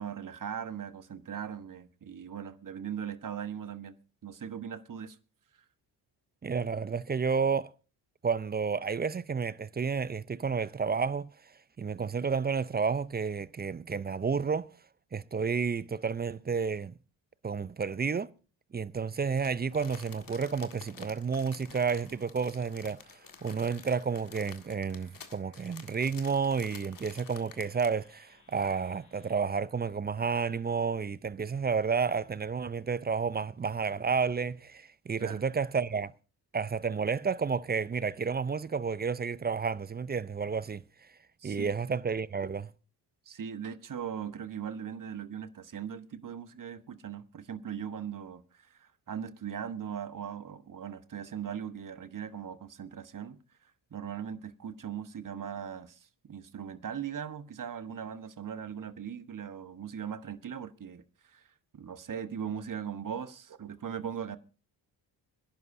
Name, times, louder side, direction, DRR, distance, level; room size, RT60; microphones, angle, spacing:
voice 1, 0.0-3.9 4.2-5.2 35.2-35.4 41.4-41.7 43.3-53.4 53.9-56.0 56.3-61.4 61.7-64.4, right 8 dB, 40° right, 1.3 m, -39 dB
voice 2, 6.4-7.7 8.2-11.3 11.8-14.7 15.1-16.9 17.4-18.3 18.7-23.0 23.4-36.1 36.5-40.8 41.4-42.7, right 5 dB, 20° right, 0.5 m, -31 dB
sound 1, 19.4-29.4, left 4 dB, 80° left, 7.6 m, -63 dB
Crumpling crinkling, 19.4-28.1 28.5-28.6, left 6 dB, 40° left, 1.9 m, -50 dB
26.0 x 11.0 x 2.7 m
hypercardioid pair, 50°, 50 cm